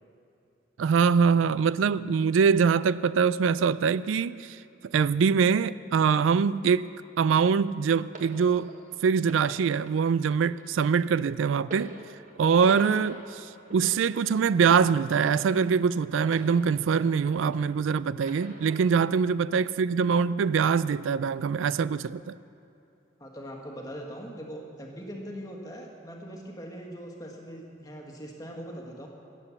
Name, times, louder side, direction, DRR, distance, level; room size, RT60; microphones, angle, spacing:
voice 1, 0.8-4.6 4.9-8.7 9.0-11.9 12.4-22.4, right 6 dB, 90° right, 0.4 m, -24 dB
sound 1, 8.1-17.8 18.2-19.2 20.0-20.2, right 2 dB, 40° right, 1.4 m, -45 dB
voice 2, 23.2-29.1, equal, 20° left, 1.6 m, -41 dB
17.5 x 7.9 x 7.1 m
head